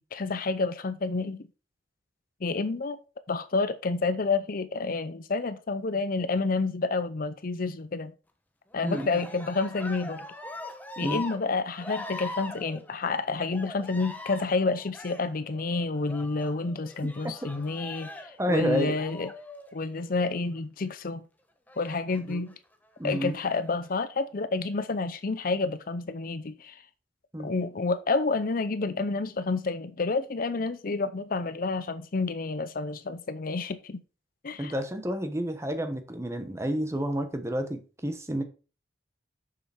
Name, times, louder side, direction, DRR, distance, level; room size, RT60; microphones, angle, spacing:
voice 1, 0.0-1.5 2.4-3.0 3.3-8.1 8.7-10.3 11.0-19.3 19.7-21.2 21.8-22.5 23.0-26.8 27.4-34.0 34.4-34.7, left 3 dB, 50° left, 0.6 m, -29 dB
Cheering, 8.7-20.4 21.7-22.5 23.3-23.9, left 2 dB, 10° left, 1.0 m, -42 dB
voice 2, 18.4-19.0 22.3-22.4 23.0-23.4 27.3-27.5 34.6-38.4, equal, 15° right, 1.1 m, -30 dB
6.8 x 6.6 x 4.4 m
head